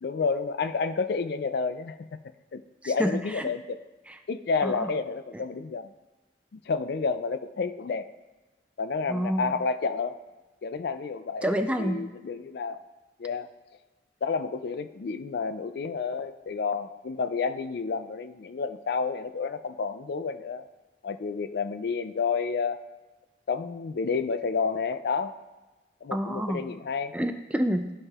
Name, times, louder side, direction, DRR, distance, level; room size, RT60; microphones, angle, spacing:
voice 1, 0.0-2.2 2.5-3.8 4.3-5.9 6.5-8.1 8.8-10.2 10.6-11.5 11.8-12.8 13.2-13.5 14.2-20.7 21.0-22.8 23.5-25.3 26.0-27.1, left 5 dB, 65° left, 11 dB, 0.4 m, -30 dB
voice 2, 3.0-3.5 4.1-4.2 4.6-4.9 9.1-9.6 11.4-12.1 26.1-26.6 27.1-27.9, equal, 5° right, 7 dB, 0.4 m, -28 dB
13.0 x 5.3 x 2.4 m, 1.2 s
head